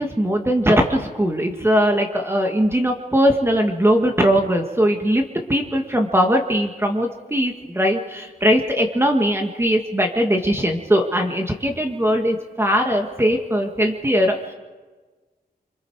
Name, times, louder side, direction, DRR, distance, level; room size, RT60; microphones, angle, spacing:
voice 1, 0.0-5.2 5.5-14.5, equal, 15° right, 3 dB, 1.9 m, -20 dB
26.0 x 25.5 x 4.9 m, 1.3 s
wide cardioid pair, 95°, 16 cm